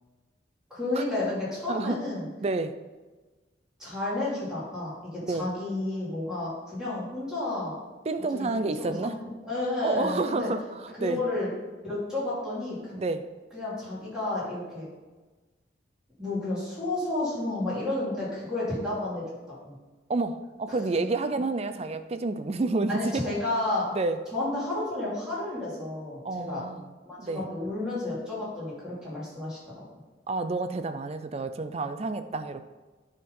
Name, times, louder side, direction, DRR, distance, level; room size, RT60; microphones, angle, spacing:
voice 1, 0.7-2.3 3.8-7.8 8.3-10.5 11.0-11.5 11.8-13.0 13.5-14.9 16.2-19.2 19.6-19.7 20.7-20.8 22.9-23.9 24.3-26.6 27.1-29.6, left 2 dB, 5° right, -8 dB, 2.7 m, -31 dB
voice 2, 2.4-2.8 5.3-5.5 8.1-9.2 9.8-11.2 13.0-13.3 20.1-23.3 23.9-24.2 26.2-26.9 27.2-27.5 30.3-32.6, right 3 dB, 35° right, 10 dB, 0.4 m, -29 dB
9.3 x 3.7 x 5.4 m, 1.3 s
head